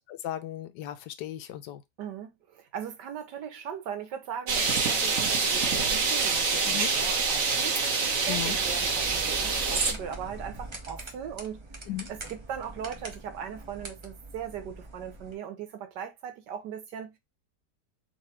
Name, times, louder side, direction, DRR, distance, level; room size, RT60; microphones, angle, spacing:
voice 1, 0.1-1.8 6.6-6.9 8.3-8.6 11.9-12.1, left 12 dB, 90° left, 1.3 m, -36 dB
voice 2, 2.0-11.6 12.1-17.1, right 8 dB, 85° right, 1.6 m, -39 dB
sound 1, 4.5-9.9, right 4 dB, 55° right, 1.3 m, -26 dB
sound 2, 8.0-15.3, right 2 dB, 35° right, 0.4 m, -43 dB
4.1 x 2.7 x 4.2 m
omnidirectional pair, 1.8 m